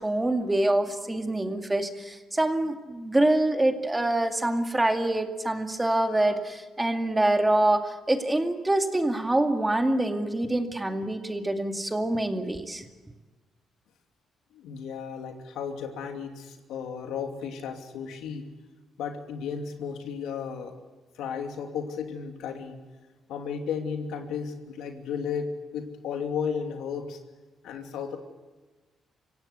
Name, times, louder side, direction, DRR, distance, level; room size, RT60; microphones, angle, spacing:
voice 1, 0.0-12.9, right 1 dB, 15° right, 5 dB, 2.3 m, -25 dB
voice 2, 14.5-18.5 19.0-20.8 21.1-22.8 23.3-27.2 27.6-28.2, left 6 dB, 85° left, 4 dB, 2.7 m, -34 dB
25.5 x 16.5 x 8.3 m, 1.3 s
cardioid pair, 90°, 0 cm